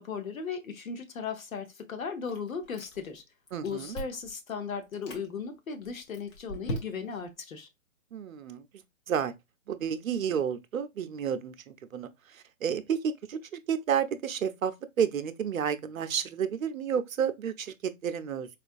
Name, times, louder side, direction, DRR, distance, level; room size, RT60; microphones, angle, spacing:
voice 1, 0.0-3.2 3.6-7.7, left 5 dB, 85° left, 1.0 m, -37 dB
Chewing mastication, 2.3-3.2 3.5-4.3 4.8-5.3 5.8-7.3, right 1 dB, 20° left, 0.7 m, -39 dB
voice 2, 3.5-4.0 8.1-8.6 9.1-9.3 9.7-12.1 12.6-13.4 13.7-14.7 15.0-18.5, right 8 dB, 80° right, 0.6 m, -30 dB
4.3 x 2.4 x 2.5 m
hypercardioid pair, 145°, 40 cm